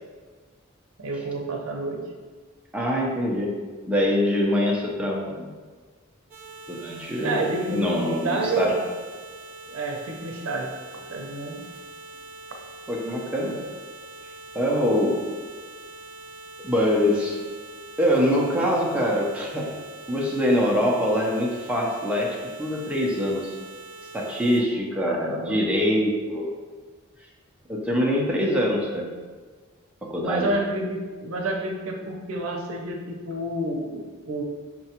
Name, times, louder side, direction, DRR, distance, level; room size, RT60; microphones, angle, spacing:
voice 1, 1.0-2.0 7.2-8.8 9.7-11.6 25.0-25.6 30.2-34.4, right 2 dB, 90° right, 1 dB, 0.6 m, -29 dB
voice 2, 2.7-3.6 3.8-5.5 6.7-8.8 12.9-13.6 14.5-15.2 16.6-17.4 18.0-19.7 20.1-23.5 24.1-26.5 27.7-29.1 30.0-30.6, equal, 5° right, -3 dB, 0.5 m, -24 dB
sound 1, 6.3-24.6, right 3 dB, 40° right, 0.8 m, -43 dB
5.6 x 2.2 x 2.8 m, 1.4 s
head